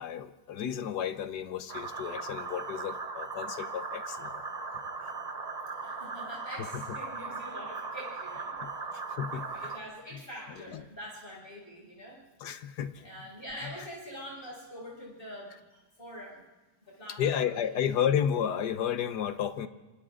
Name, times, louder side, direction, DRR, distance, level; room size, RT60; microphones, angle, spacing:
voice 1, 0.0-4.4 6.7-7.0 8.6-9.5 10.6-10.8 12.4-13.0 13.6-13.7 17.2-19.7, left 9 dB, 75° left, 11 dB, 1.6 m, -32 dB
sound 1, 1.7-9.8, right 4 dB, 30° right, 0.9 m, -38 dB
voice 2, 5.7-12.2 13.0-16.5 16.9-17.9, equal, 30° left, -5 dB, 7.3 m, -45 dB
27.0 x 26.0 x 3.8 m, 1.2 s
omnidirectional pair, 1.8 m